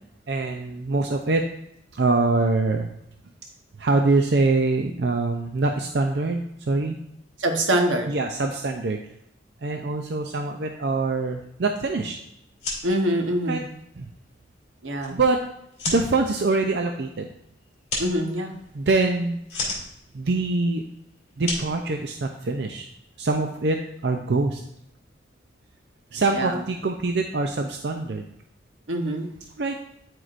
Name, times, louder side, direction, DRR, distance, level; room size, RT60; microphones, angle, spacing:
voice 1, 0.3-1.4 1.9-2.9 3.8-7.0 8.1-9.0 9.6-12.2 13.5-13.6 14.0-14.1 15.1-15.4 15.9-17.3 18.7-19.6 20.1-20.8 21.4-22.9 23.2-24.6 26.1-28.3 29.6-29.8, right 3 dB, 60° right, 4 dB, 0.5 m, -24 dB
voice 2, 7.4-8.1 12.8-13.6 14.8-15.2 18.0-18.5 26.3-26.6 28.9-29.3, right 1 dB, 85° right, 4 dB, 1.1 m, -24 dB
sound 1, 12.4-22.6, left 3 dB, 35° left, 2.6 m, -36 dB
12.0 x 4.7 x 2.5 m, 0.78 s
head